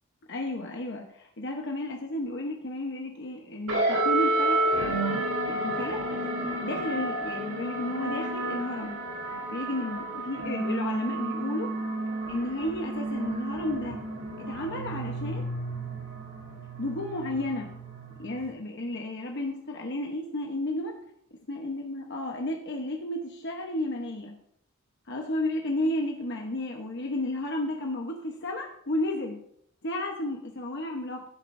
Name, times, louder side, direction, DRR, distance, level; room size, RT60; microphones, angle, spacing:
voice 1, 0.3-4.8 5.5-9.0 9.5-11.7 12.3-14.0 14.4-15.5 16.8-17.7 18.2-21.0 21.5-24.3 25.1-29.4 29.8-31.2, left 1 dB, 55° left, 1 dB, 1.1 m, -32 dB
sound 1, 3.7-18.4, right 1 dB, 80° right, 4.2 m, -31 dB
15.5 x 8.2 x 2.7 m, 0.70 s
head